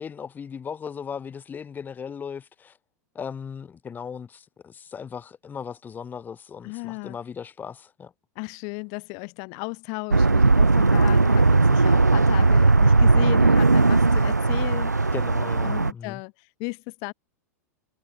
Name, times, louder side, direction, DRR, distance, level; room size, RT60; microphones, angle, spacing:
voice 1, 0.0-2.8 3.1-8.1 15.1-16.2, left 7 dB, 20° left, 2.5 m, -37 dB
voice 2, 6.6-7.2 8.4-15.1 15.6-17.1, left 40 dB or more, 45° left, 1.8 m, -35 dB
sound 1, 10.1-15.9, right 3 dB, 90° right, 1.4 m, -18 dB
figure-of-eight pair, 95°, 9 cm